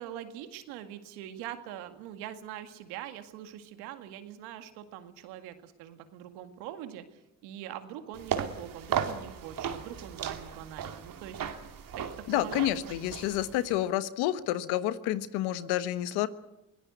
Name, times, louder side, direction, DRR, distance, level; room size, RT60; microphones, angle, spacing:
voice 1, 0.0-11.4 12.0-12.1 12.3-13.1, right 11 dB, 85° right, 9 dB, 2.0 m, -43 dB
sound 1, 8.1-13.8, right 8 dB, 60° right, 2.5 m, -36 dB
voice 2, 12.3-16.3, left 13 dB, 80° left, 13 dB, 1.3 m, -29 dB
24.0 x 17.5 x 8.1 m, 0.93 s
hypercardioid pair, 55°, 38 cm